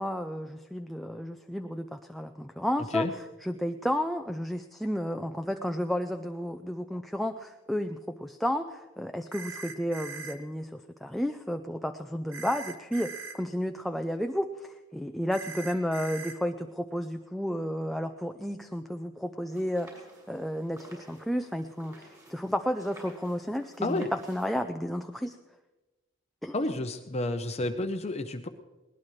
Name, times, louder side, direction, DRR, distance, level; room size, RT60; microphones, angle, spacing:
voice 1, 0.0-19.9 20.3-25.4 26.4-26.5, equal, ahead, 6 dB, 0.5 m, -32 dB
sound 1, 9.3-10.4 12.3-13.4 15.3-16.3, right 4 dB, 80° right, 1.3 m, -41 dB
sound 2, 19.5-24.5, right 1 dB, 15° right, 6.8 m, -53 dB
voice 2, 26.5-28.5, left 2 dB, 30° left, 6 dB, 0.8 m, -30 dB
20.5 x 19.5 x 3.2 m, 1.1 s
head